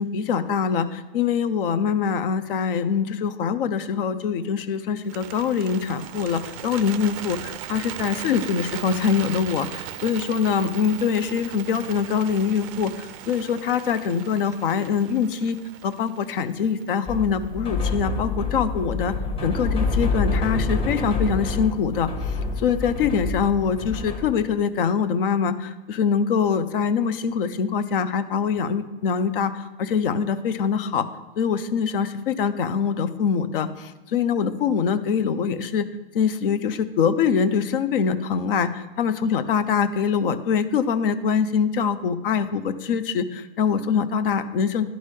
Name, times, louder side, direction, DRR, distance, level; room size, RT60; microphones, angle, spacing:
voice 1, 0.0-15.6 15.8-19.1 19.4-31.1 31.4-35.9 36.1-44.8, left 6 dB, 70° left, 12 dB, 0.6 m, -24 dB
Bird, 5.0-17.2, right 12 dB, 35° right, 0.4 m, -38 dB
sound 1, 17.1-24.5, left 3 dB, 20° left, 1.0 m, -27 dB
11.0 x 4.0 x 3.2 m, 1.2 s
hypercardioid pair, 120°, 29 cm